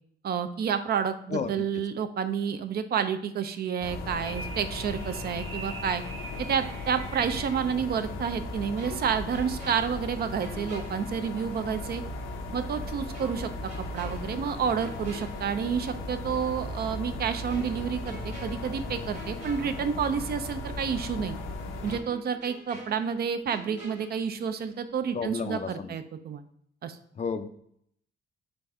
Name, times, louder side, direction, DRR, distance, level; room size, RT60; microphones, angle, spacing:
voice 1, 0.2-6.0 6.4-12.0 12.5-13.5 13.8-21.4 21.8-26.4 26.8-27.0, right 7 dB, 55° right, 9 dB, 0.4 m, -30 dB
sound 1, 3.8-22.0, left 2 dB, 85° left, 0.6 m, -37 dB
sound 2, 4.2-7.7, right 3 dB, 75° right, 1.0 m, -43 dB
sound 3, 8.8-11.7 12.0-12.2 13.1-16.1 16.4-16.6 17.5-20.5 20.8-20.9 21.9-24.9 25.1-25.4, right 1 dB, 35° right, 1.5 m, -48 dB
voice 2, 25.1-25.9 27.2-27.5, left 5 dB, 35° left, 10 dB, 0.4 m, -31 dB
4.0 x 3.3 x 3.5 m, 0.69 s
cardioid pair, 90°, 20 cm